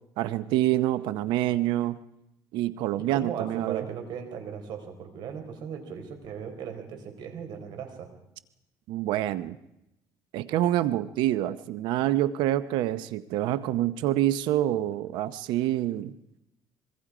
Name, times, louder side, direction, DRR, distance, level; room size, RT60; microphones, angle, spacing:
voice 1, 0.2-2.0 2.5-3.8 8.9-9.6 10.3-16.1, right 13 dB, 85° right, 14 dB, 0.8 m, -26 dB
voice 2, 3.1-8.1, right 7 dB, 70° right, 7 dB, 4.4 m, -37 dB
24.5 x 23.0 x 5.0 m, 0.86 s
cardioid pair, 120°, 8 cm